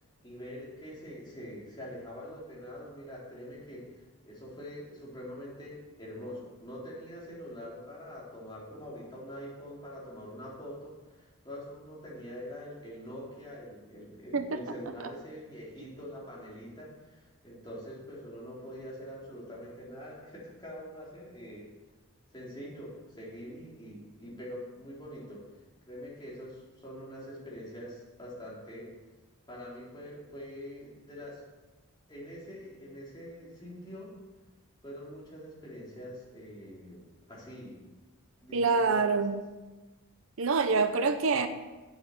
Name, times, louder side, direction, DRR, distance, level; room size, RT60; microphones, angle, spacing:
voice 1, 0.2-21.7 22.3-25.6 25.9-28.9 29.5-31.4 32.1-34.1 34.8-37.0 37.3-37.8 38.4-39.2, equal, 20° left, -6 dB, 3.4 m, -44 dB
voice 2, 38.5-39.4 40.4-41.5, right 4 dB, 65° right, 9 dB, 0.6 m, -26 dB
8.0 x 8.0 x 7.0 m, 1.2 s
head